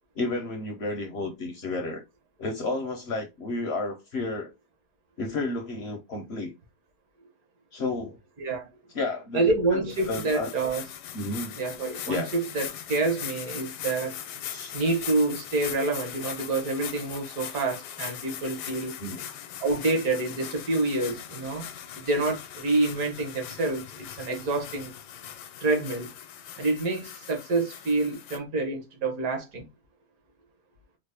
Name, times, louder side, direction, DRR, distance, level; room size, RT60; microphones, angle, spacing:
voice 1, 0.2-2.0 2.4-4.5 5.2-6.5 7.7-8.2 8.9-9.8 10.1-10.5 11.1-11.6 12.1-12.3 14.4-14.7 19.0-19.2, left 2 dB, 60° left, 0.7 m, -31 dB
voice 2, 8.4-8.7 9.3-10.8 11.6-14.1 14.7-18.9 19.6-21.7 22.0-24.9 25.6-26.1 26.6-29.7, right 2 dB, 65° right, 1.5 m, -27 dB
sound 1, 9.9-28.4, left 10 dB, 80° left, 1.2 m, -40 dB
3.9 x 2.0 x 3.3 m
omnidirectional pair, 1.8 m